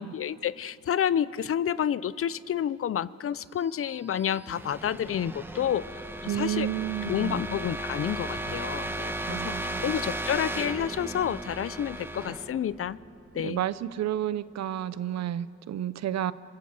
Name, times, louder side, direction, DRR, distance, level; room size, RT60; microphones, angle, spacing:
voice 1, 0.0-6.7 7.1-13.0 13.3-13.6, left 9 dB, 50° left, 18 dB, 0.6 m, -30 dB
sound 1, 3.8-13.6, right 1 dB, 5° right, 1.3 m, -36 dB
voice 2, 6.3-7.4 9.3-9.9 13.4-16.3, right 11 dB, 60° right, 16 dB, 0.8 m, -31 dB
26.5 x 23.5 x 6.7 m, 2.6 s
cardioid pair, 90°, 30 cm